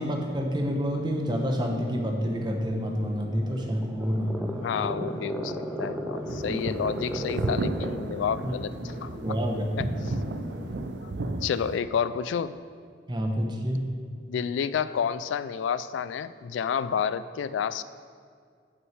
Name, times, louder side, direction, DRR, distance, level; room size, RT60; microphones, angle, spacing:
voice 1, 0.0-4.6 6.5-6.6 8.4-8.6 9.2-10.1 13.1-13.9, equal, 25° right, 2 dB, 0.9 m, -28 dB
sound 1, 0.9-10.9, left 1 dB, 25° left, 2.3 m, -43 dB
sound 2, 3.3-8.2, equal, 5° right, 0.5 m, -35 dB
voice 2, 4.6-9.4 9.8-10.2 11.0-11.1 11.4-12.5 14.3-17.8, left 7 dB, 85° left, 15 dB, 0.3 m, -30 dB
sound 3, 6.3-11.8, right 2 dB, 65° right, 0.4 m, -34 dB
6.3 x 6.1 x 7.3 m, 2.1 s
head